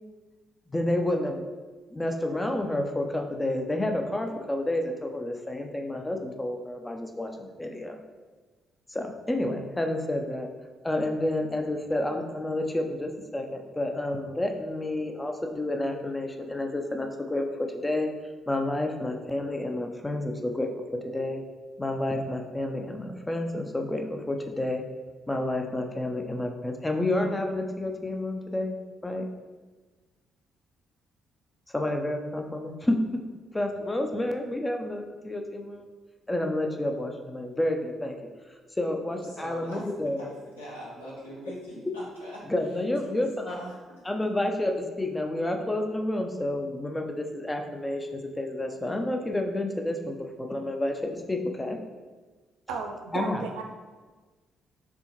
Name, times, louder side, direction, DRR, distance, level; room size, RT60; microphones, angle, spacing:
voice 1, 0.7-1.5 1.9-8.0 8.9-10.5 10.8-18.1 18.5-21.4 21.8-24.8 25.3-28.8 29.0-29.3 31.7-33.2 33.5-35.9 36.3-38.2 38.8-40.3 42.5-43.6 44.0-51.8 53.1-53.4, left 1 dB, 15° left, 4 dB, 0.5 m, -30 dB
voice 2, 39.1-39.8 40.2-42.5 43.0-43.7, equal, 85° left, -7 dB, 0.9 m, -42 dB
voice 3, 52.7-53.6, right 5 dB, 65° right, 3 dB, 0.4 m, -34 dB
4.4 x 3.4 x 2.9 m, 1.3 s
figure-of-eight pair, 45°, 0 cm